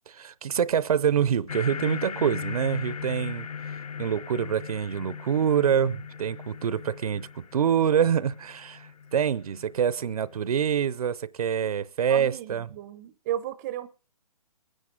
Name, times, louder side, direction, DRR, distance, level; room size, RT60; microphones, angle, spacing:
voice 1, 0.1-12.7, right 8 dB, 65° right, 0.7 m, -26 dB
sound 1, 1.5-10.4, left 6 dB, 65° left, 0.8 m, -39 dB
voice 2, 12.1-13.9, right 11 dB, 25° right, 0.7 m, -34 dB
22.0 x 10.0 x 3.8 m
hypercardioid pair, 155°, 20 cm